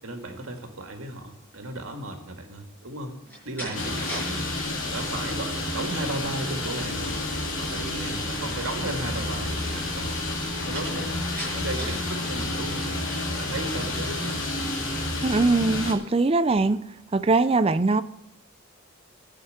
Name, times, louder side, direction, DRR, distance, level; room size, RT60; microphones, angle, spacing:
voice 1, 0.0-3.1 3.4-4.5 4.9-7.3 7.6-10.2 10.6-13.0 13.4-14.4, right 2 dB, 80° right, 4 dB, 2.0 m, -35 dB
Slam, 3.2-4.3 4.7-5.1 10.7-12.1, equal, 10° left, 6.2 m, -37 dB
sound 1, 3.7-15.9, left 2 dB, 90° left, 2.1 m, -30 dB
voice 2, 15.2-16.8 17.1-18.0, right 3 dB, 30° right, 13 dB, 0.4 m, -21 dB
11.0 x 6.6 x 8.6 m, 0.77 s
head